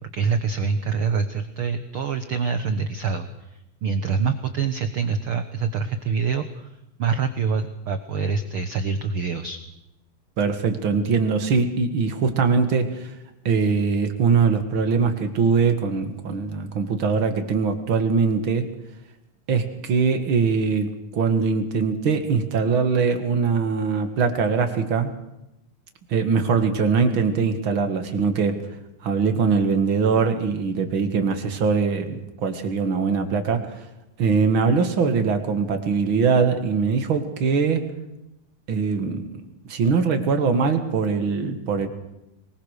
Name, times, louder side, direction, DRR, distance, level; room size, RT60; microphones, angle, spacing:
voice 1, 0.1-9.6, right 5 dB, 85° right, 9 dB, 1.2 m, -26 dB
voice 2, 10.4-13.1 13.5-18.7 19.5-25.1 26.1-28.6 29.0-33.8 34.2-37.9 38.7-39.4 39.7-41.9, right 5 dB, 45° right, 7 dB, 2.1 m, -22 dB
23.0 x 20.5 x 6.6 m, 0.90 s
omnidirectional pair, 4.0 m